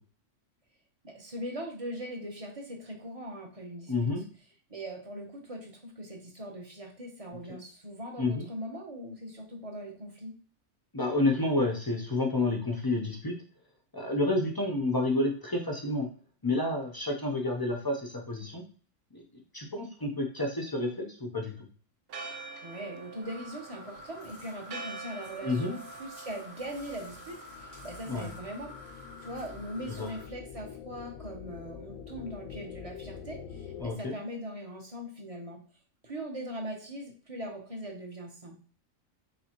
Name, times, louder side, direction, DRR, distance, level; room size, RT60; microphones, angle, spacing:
voice 1, 1.0-4.1 4.7-10.3 22.6-28.8 29.2-35.6 36.0-38.6, equal, 30° right, 1 dB, 0.9 m, -40 dB
voice 2, 3.9-4.2 7.5-7.6 8.2-8.5 10.9-13.4 13.9-16.1 16.4-18.6 19.1-19.2 19.5-21.7 25.4-25.7 28.1-28.3 29.9-30.1 33.8-34.2, left 2 dB, 30° left, 2 dB, 0.4 m, -29 dB
Church bell, 22.1-28.4, right 4 dB, 60° right, 0.6 m, -46 dB
sound 1, 23.2-30.2, left 1 dB, 85° right, 2.4 m, -49 dB
sound 2, 26.3-33.9, left 8 dB, 90° left, 1.0 m, -46 dB
4.1 x 3.5 x 2.9 m, 0.41 s
omnidirectional pair, 1.3 m